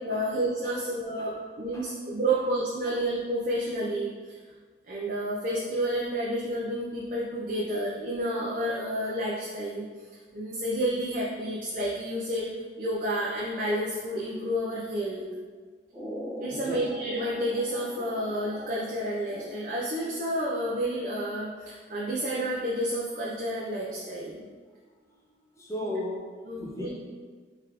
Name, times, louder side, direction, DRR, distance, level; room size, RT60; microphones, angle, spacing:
voice 1, 0.0-4.1 4.9-9.9 10.3-12.5 12.8-15.2 16.4-24.4 25.8-25.9 26.5-26.9, right 1 dB, 50° right, -6 dB, 0.5 m, -30 dB
sound 1, 15.9-20.0, equal, 25° right, 1.0 m, -41 dB
voice 2, 16.5-16.8 24.9-26.3 26.6-26.9, left 1 dB, 15° left, -3 dB, 0.5 m, -37 dB
3.9 x 3.3 x 2.9 m, 1.5 s
head